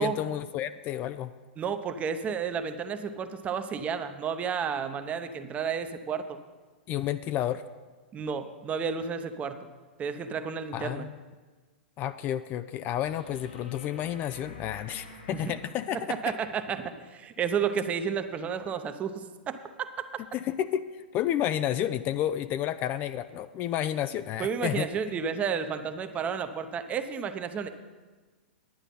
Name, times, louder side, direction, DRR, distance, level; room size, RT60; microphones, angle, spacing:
voice 1, 0.0-1.3 6.9-7.6 10.7-11.2 12.0-16.4 20.3-24.9, left 11 dB, 35° left, 13 dB, 0.4 m, -31 dB
voice 2, 1.6-6.4 8.1-9.6 10.0-11.1 15.4-15.5 16.1-19.9 24.4-27.7, right 6 dB, 25° right, 9 dB, 0.8 m, -31 dB
sound 1, 13.0-16.4 19.0-19.1, left 2 dB, 70° left, 3.5 m, -48 dB
10.5 x 9.0 x 5.5 m, 1.4 s
hypercardioid pair, 115°, 6 cm